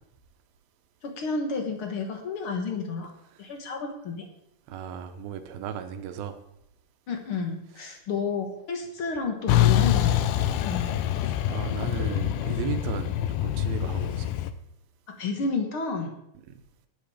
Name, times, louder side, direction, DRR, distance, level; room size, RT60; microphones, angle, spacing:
voice 1, 1.0-3.1 3.4-4.2 7.1-10.3 10.6-11.0 15.1-16.1, left 4 dB, 50° left, 3 dB, 1.6 m, -31 dB
voice 2, 4.7-6.4 11.2-14.4, right 7 dB, 75° right, 9 dB, 2.7 m, -35 dB
Truck, 9.5-14.5, left 12 dB, 80° left, 1.9 m, -25 dB
11.0 x 10.0 x 5.0 m, 0.78 s
omnidirectional pair, 4.4 m